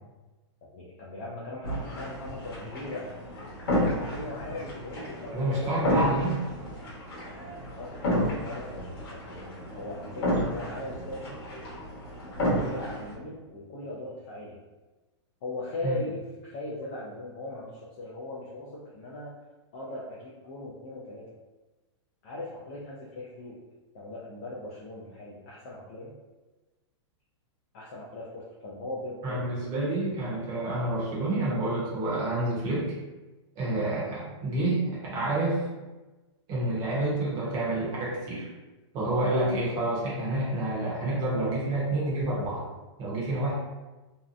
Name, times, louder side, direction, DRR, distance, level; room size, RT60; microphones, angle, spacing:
voice 1, 0.6-3.1 4.0-5.9 7.7-11.4 12.5-14.6 15.4-19.3 19.7-21.3 22.2-23.6 23.9-26.2 27.7-29.6, left 2 dB, 30° left, -6 dB, 0.3 m, -39 dB
sound 1, 1.6-13.1, equal, 50° left, 1.0 m, -32 dB
voice 2, 5.3-6.4 15.8-16.0 29.2-32.9 33.6-35.6 36.5-38.5 38.9-42.6 43.0-43.5, right 1 dB, 20° right, -7 dB, 0.8 m, -28 dB
2.6 x 2.1 x 2.4 m, 1.2 s
supercardioid pair, 170°, 16 cm